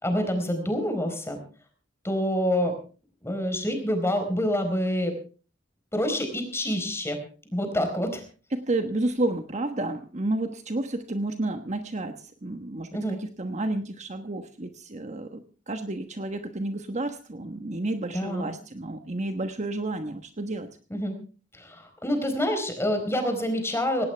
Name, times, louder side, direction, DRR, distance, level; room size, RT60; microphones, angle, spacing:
voice 1, 0.0-1.4 2.0-2.8 3.2-5.1 5.9-7.2 7.5-8.2 12.9-13.2 18.1-18.5 20.9-21.1 21.6-24.1, equal, 15° left, 6 dB, 4.3 m, -27 dB
voice 2, 8.5-12.2 12.4-20.7, right 2 dB, 40° right, 7 dB, 1.2 m, -31 dB
18.5 x 18.0 x 3.4 m, 0.37 s
head